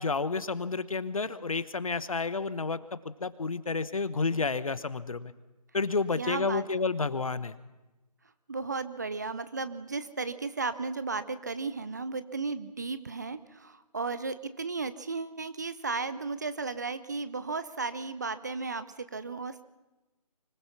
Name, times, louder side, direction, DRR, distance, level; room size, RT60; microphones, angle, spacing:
voice 1, 0.0-5.3 5.7-7.6, left 4 dB, 55° left, 15 dB, 1.1 m, -30 dB
voice 2, 6.2-6.6 8.5-19.6, right 4 dB, 25° right, 13 dB, 0.6 m, -34 dB
25.0 x 19.5 x 5.9 m, 1.1 s
figure-of-eight pair, 160°, 21 cm